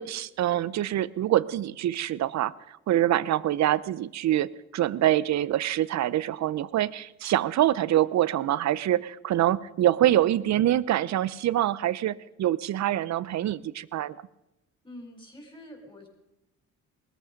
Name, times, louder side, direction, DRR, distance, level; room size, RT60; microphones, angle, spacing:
voice 1, 0.0-14.2, right 13 dB, 65° right, 19 dB, 0.7 m, -25 dB
voice 2, 14.8-16.1, left 1 dB, 15° left, 4 dB, 4.3 m, -46 dB
19.5 x 14.0 x 5.2 m, 0.89 s
cardioid pair, 90°, 30 cm